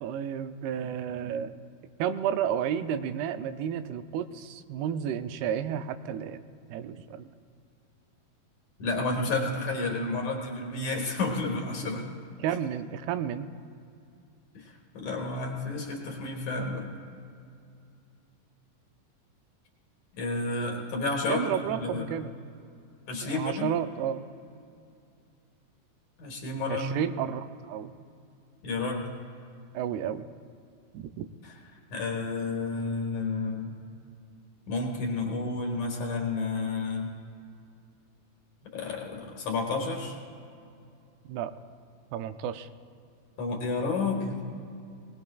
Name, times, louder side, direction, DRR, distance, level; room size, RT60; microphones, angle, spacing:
voice 1, 0.0-1.6 2.0-6.4 6.7-7.3 12.4-13.5 21.3-22.3 23.2-24.2 26.7-27.9 29.7-30.3 30.9-31.3 41.3-41.5 42.1-42.7, right 9 dB, 90° right, 10 dB, 2.6 m, -32 dB
voice 2, 8.8-12.1 14.5-16.9 20.1-22.1 23.1-23.7 26.2-26.9 28.6-29.0 31.9-33.8 34.7-37.1 38.7-40.2 43.4-44.3, left 3 dB, 60° left, 0 dB, 2.4 m, -31 dB
20.0 x 19.0 x 2.3 m, 2.4 s
omnidirectional pair, 4.5 m